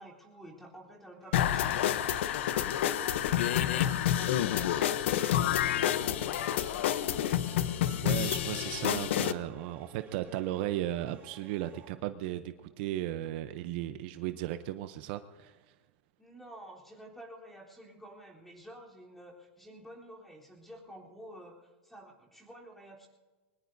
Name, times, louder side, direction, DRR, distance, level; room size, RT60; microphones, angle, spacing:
voice 1, 0.0-2.2 2.7-7.3 16.2-23.1, right 1 dB, 5° left, -3 dB, 3.6 m, -51 dB
sound 1, 1.2-11.9, right 8 dB, 30° right, 2.6 m, -53 dB
sound 2, 1.3-9.3, left 11 dB, 75° left, 0.8 m, -29 dB
voice 2, 8.0-15.6, right 13 dB, 55° right, 10 dB, 0.7 m, -35 dB
22.5 x 20.0 x 2.7 m, 1.3 s
supercardioid pair, 150°, 6 cm